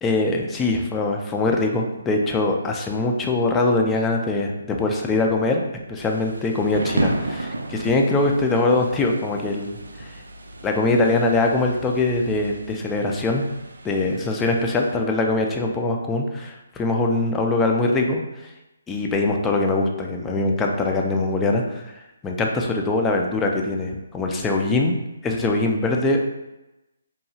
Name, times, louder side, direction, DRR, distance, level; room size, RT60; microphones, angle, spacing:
voice 1, 0.0-5.6 5.9-10.1 10.6-13.5 13.8-18.5 18.9-21.9 22.2-24.9 25.2-26.2, left 2 dB, 10° left, 1 dB, 0.3 m, -22 dB
Thunder / Rain, 6.0-15.0, right 2 dB, 85° right, 0.3 m, -33 dB
2.9 x 2.3 x 2.7 m, 0.98 s
hypercardioid pair, 150°, 0 cm